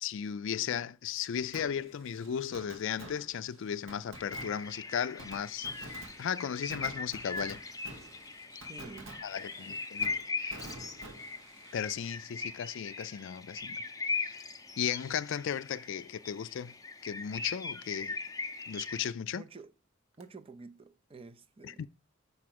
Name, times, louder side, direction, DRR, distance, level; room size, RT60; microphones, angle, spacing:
voice 1, 0.0-7.6 9.2-10.1 10.4-10.7 11.7-13.8 14.2-14.4 14.8-16.7 17.0-18.2 18.7-19.4 21.6-21.9, left 8 dB, 65° left, 0.4 m, -36 dB
Fireworks, 1.5-13.2 13.5-13.6 20.2-20.3, right 2 dB, 65° right, 1.3 m, -50 dB
sound 1, 4.1-19.1, left 4 dB, 20° left, 0.7 m, -40 dB
voice 2, 8.6-9.8 19.3-19.7 20.2-21.9, right 3 dB, 30° right, 0.6 m, -50 dB
5.4 x 4.8 x 6.0 m
head